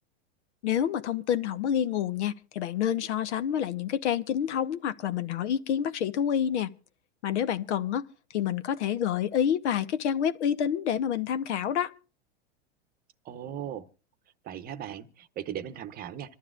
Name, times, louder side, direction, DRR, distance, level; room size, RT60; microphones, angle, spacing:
voice 1, 0.6-6.7 7.2-11.9, left 9 dB, 75° left, 1.1 m, -28 dB
voice 2, 13.2-13.8 14.4-16.4, right 10 dB, 25° right, 0.8 m, -38 dB
26.5 x 12.5 x 2.4 m
supercardioid pair, 130°, 35 cm